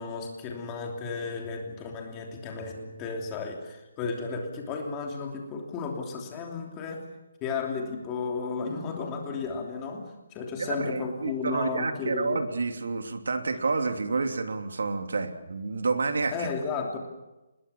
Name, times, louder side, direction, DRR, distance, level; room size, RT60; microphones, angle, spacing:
voice 1, 0.0-7.0 7.4-12.4 16.3-17.0, left 4 dB, 15° left, 2 dB, 3.1 m, -34 dB
voice 2, 10.6-16.5, right 4 dB, 75° right, 7 dB, 2.9 m, -29 dB
24.5 x 21.0 x 7.3 m, 1.0 s
hypercardioid pair, 180°, 0 cm